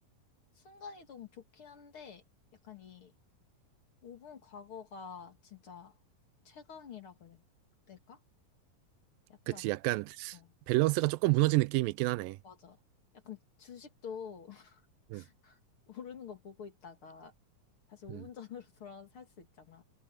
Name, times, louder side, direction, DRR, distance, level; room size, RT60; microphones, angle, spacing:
voice 1, 0.6-2.2 2.6-3.1 4.0-5.9 6.4-7.4 7.9-8.2 9.5-9.7 10.3-10.5 12.4-12.8 13.2-14.8 15.1-15.6 15.9-17.3 17.9-19.8, left 7 dB, 40° left, 2.7 m, -48 dB
voice 2, 9.5-10.4 10.7-12.4 15.1-15.2 18.1-18.3, right 21 dB, 85° right, 2.2 m, -29 dB
omnidirectional pair, 4.0 m